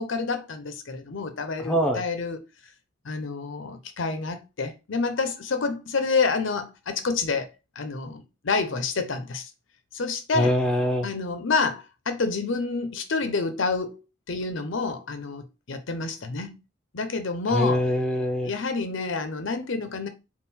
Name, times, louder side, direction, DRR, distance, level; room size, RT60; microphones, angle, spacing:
voice 1, 0.0-2.4 3.0-9.5 9.9-10.6 11.0-14.0 14.3-16.6 16.9-17.8 18.4-20.1, left 4 dB, 70° left, 0.6 m, -28 dB
voice 2, 1.6-2.0 10.3-11.1 17.5-18.5, equal, 5° left, 0.6 m, -23 dB
3.7 x 2.3 x 4.2 m
head